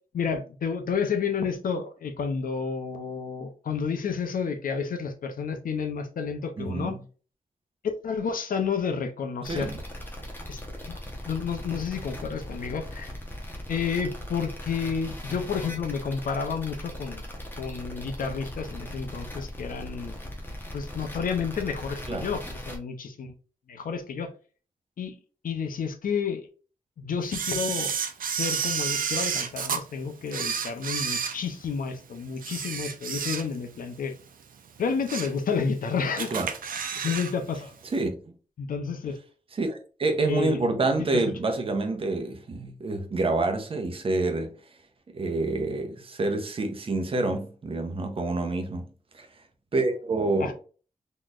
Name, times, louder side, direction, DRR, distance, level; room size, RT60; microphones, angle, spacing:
voice 1, 0.1-7.0 8.0-9.7 10.5-10.6 10.9-11.0 11.2-13.1 13.7-17.2 17.6-20.2 20.7-23.3 23.7-24.3 25.0-25.1 25.4-26.5 27.0-27.9 28.3-34.1 34.8-36.3 37.0-37.7 38.6-39.2 40.3-40.6 41.0-41.1 50.4-50.5, left 6 dB, 80° left, 0.7 m, -30 dB
voice 2, 6.6-7.0 9.5-9.8 22.1-22.3 36.3-36.5 37.8-38.1 39.5-44.5 45.1-48.9 49.1-49.3 49.7-50.5, right 2 dB, 40° right, 0.8 m, -27 dB
sound 1, 9.4-22.8, left 1 dB, 15° left, 1.1 m, -39 dB
Camera, 27.3-29.8 30.3-31.9 32.4-33.8 34.1-34.3 34.8-35.4 35.7-35.8 36.2-37.3 37.6-37.7, right 7 dB, 80° right, 0.6 m, -30 dB
4.0 x 3.1 x 2.5 m
wide cardioid pair, 175°, 14 cm